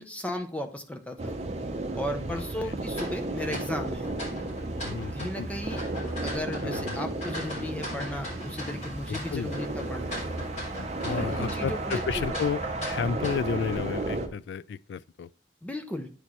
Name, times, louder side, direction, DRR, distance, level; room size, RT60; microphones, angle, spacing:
voice 1, 0.0-1.3 1.9-4.1 5.1-5.8 6.2-10.2 11.0-12.4 15.6-16.1, left 1 dB, 10° left, 0.6 m, -35 dB
sound 1, 1.2-14.3, right 2 dB, 35° right, 0.8 m, -34 dB
voice 2, 2.3-2.8 4.8-5.5 6.6-7.0 9.1-9.6 11.0-15.3, left 6 dB, 70° left, 0.3 m, -32 dB
sound 2, 2.9-13.8, left 1 dB, 40° left, 3.6 m, -39 dB
9.4 x 4.3 x 3.0 m
head